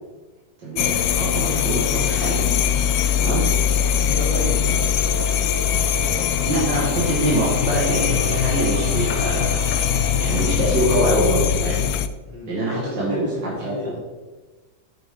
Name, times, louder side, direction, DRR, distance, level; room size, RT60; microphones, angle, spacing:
voice 1, 0.6-2.5 3.2-3.5 6.5-9.6 10.2-11.9 12.5-13.7, right 1 dB, 75° right, -6 dB, 2.8 m, -24 dB
sound 1, 0.8-12.1, left 9 dB, 70° left, 1.0 m, -21 dB
sound 2, 3.8-11.5, right 6 dB, 60° right, 1.0 m, -36 dB
voice 2, 3.9-4.9 12.2-14.0, equal, 15° right, -11 dB, 3.6 m, -32 dB
9.3 x 9.3 x 3.9 m, 1.2 s
omnidirectional pair, 1.9 m